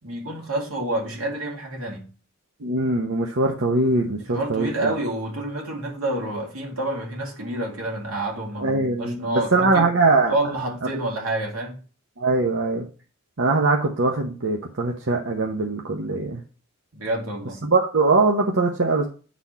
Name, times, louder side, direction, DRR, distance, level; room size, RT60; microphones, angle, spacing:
voice 1, 0.0-2.1 4.3-9.9 10.3-11.8 16.9-17.6, right 1 dB, 85° right, 2.3 m, -28 dB
voice 2, 2.6-4.9 8.6-10.3 12.2-12.9 13.4-16.4 17.6-19.1, right 3 dB, 60° right, 0.9 m, -22 dB
9.6 x 4.2 x 4.3 m
head